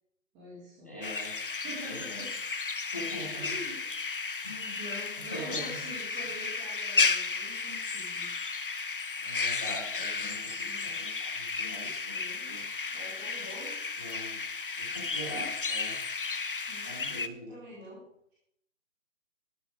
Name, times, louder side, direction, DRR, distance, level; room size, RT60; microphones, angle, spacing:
voice 1, 0.3-0.9 1.3-2.3 3.4-4.4 4.8-8.3 10.6-11.0 12.0-12.5 12.9-13.8 15.3-15.4 16.7-18.0, equal, 5° right, -8 dB, 1.9 m, -46 dB
voice 2, 0.8-1.4 1.8-2.4 2.8-3.5 4.4-4.8 5.2-5.8 9.2-12.7 14.0-14.4 14.8-16.0 16.8-17.6, equal, 10° left, -5 dB, 0.9 m, -43 dB
sound 1, 1.0-17.3, left 4 dB, 40° left, 0.6 m, -33 dB
12.0 x 11.0 x 4.6 m, 0.72 s
hypercardioid pair, 175°, 40 cm